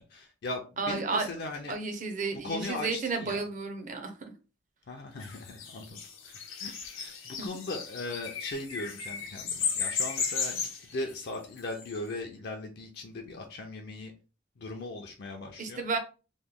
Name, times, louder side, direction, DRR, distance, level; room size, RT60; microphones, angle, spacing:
voice 1, 0.1-1.8 2.4-3.4 4.9-14.1 14.6-15.8, left 2 dB, 55° left, 3 dB, 0.4 m, -39 dB
voice 2, 0.8-1.3 1.7-4.3 15.6-16.0, right 4 dB, 40° right, 5 dB, 0.6 m, -32 dB
sound 1, 5.2-12.0, left 6 dB, 85° left, 0.8 m, -35 dB
3.1 x 2.1 x 3.6 m, 0.33 s
head